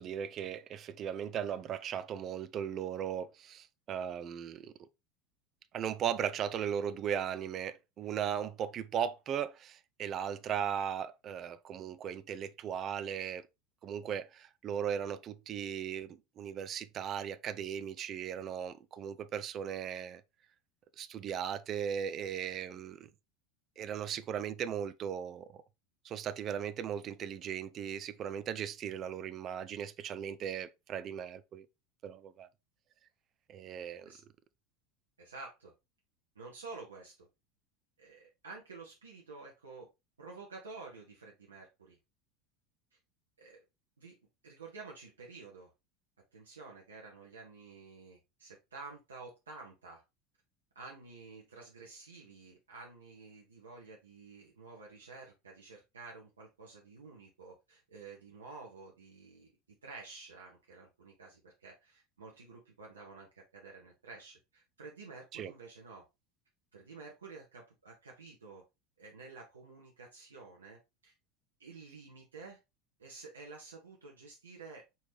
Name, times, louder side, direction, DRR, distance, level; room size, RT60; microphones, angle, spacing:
voice 1, 0.0-4.7 5.7-13.4 13.8-20.2 21.0-23.1 23.8-25.6 26.0-31.7 32.0-32.5 33.5-34.1 65.3-65.5, right 8 dB, 35° right, 0.4 m, -37 dB
voice 2, 35.2-35.7 36.3-37.3 38.0-39.9 40.2-42.0 43.4-43.6 44.0-44.2 44.4-45.7 46.3-50.0 50.7-59.5 59.8-66.0 66.7-68.6 69.0-71.1 71.6-72.6 73.0-74.8, right 4 dB, 75° right, 0.9 m, -50 dB
4.6 x 3.2 x 3.3 m
figure-of-eight pair, 75°, 0 cm